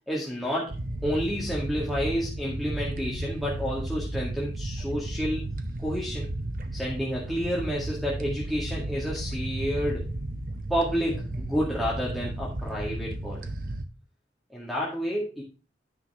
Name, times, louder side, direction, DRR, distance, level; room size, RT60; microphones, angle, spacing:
voice 1, 0.1-0.7 1.0-5.4 5.8-6.3 6.7-10.1 10.7-13.4 14.5-15.4, equal, ahead, -4 dB, 1.9 m, -30 dB
sound 1, 0.7-13.8, right 1 dB, 50° right, 1.0 m, -34 dB
9.6 x 5.7 x 3.6 m, 0.33 s
head